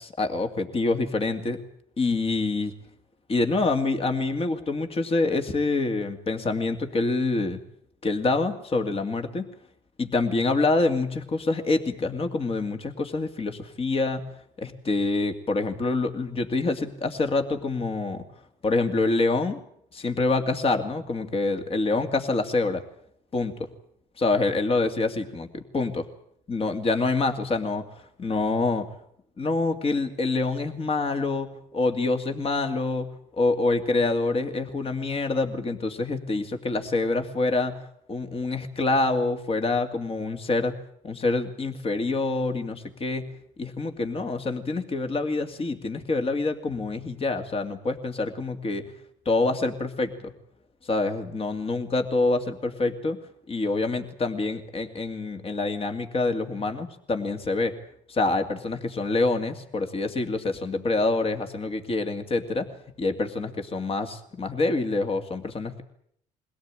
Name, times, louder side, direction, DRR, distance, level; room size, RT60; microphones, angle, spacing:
voice 1, 0.0-1.6 2.0-2.7 3.3-7.6 8.0-9.5 10.0-14.2 14.6-18.3 18.6-19.6 19.9-22.8 23.3-23.6 24.2-26.1 26.5-27.9 28.2-28.9 29.4-33.1 33.3-37.7 38.1-40.7 41.0-43.3 43.6-48.8 49.3-50.3 50.8-53.2 53.5-57.7 58.1-62.7 63.0-65.8, left 3 dB, 35° left, 7 dB, 2.5 m, -26 dB
22.5 x 17.5 x 9.0 m, 0.69 s
supercardioid pair, 85°, 16 cm